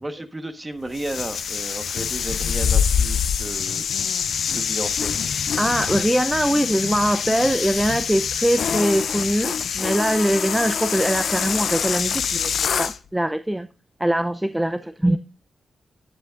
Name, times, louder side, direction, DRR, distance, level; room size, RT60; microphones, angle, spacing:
voice 1, 0.0-3.8 4.5-5.1 14.8-14.9, right 2 dB, 30° right, 1.3 m, -33 dB
sound 1, 0.9-13.0, left 7 dB, 75° left, 0.4 m, -25 dB
voice 2, 5.6-13.7 14.0-15.2, right 1 dB, 10° right, 0.5 m, -22 dB
10.5 x 8.3 x 2.5 m
supercardioid pair, 40°, 0 cm